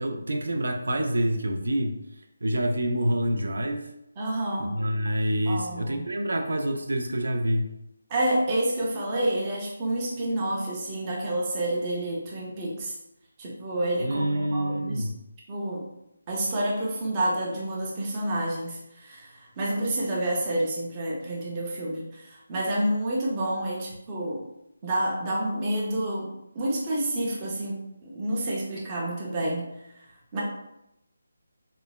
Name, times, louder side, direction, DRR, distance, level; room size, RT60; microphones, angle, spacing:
voice 1, 0.0-2.0 2.4-3.9 4.6-7.7 14.0-15.2, right 1 dB, 85° right, 4 dB, 0.4 m, -27 dB
voice 2, 4.2-4.7 5.5-6.1 8.1-13.0 13.4-15.1 15.5-15.9 16.3-24.4 24.8-30.1 30.3-30.4, right 1 dB, 15° right, -4 dB, 0.4 m, -29 dB
3.0 x 2.0 x 2.2 m, 0.84 s
hypercardioid pair, 175°, 0 cm